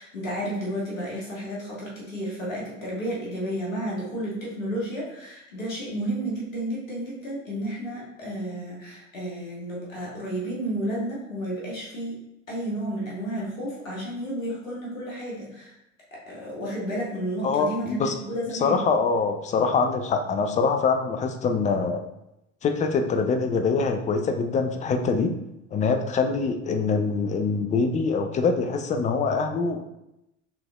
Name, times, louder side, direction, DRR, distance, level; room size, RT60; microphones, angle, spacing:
voice 1, 0.0-15.7 16.3-18.9, right 1 dB, 85° left, -5 dB, 1.6 m, -32 dB
voice 2, 17.4-18.1 18.6-22.0 22.6-25.3 25.7-29.8, left 4 dB, 20° left, 6 dB, 0.4 m, -24 dB
5.8 x 3.2 x 2.4 m, 0.87 s
figure-of-eight pair, 70°, 39 cm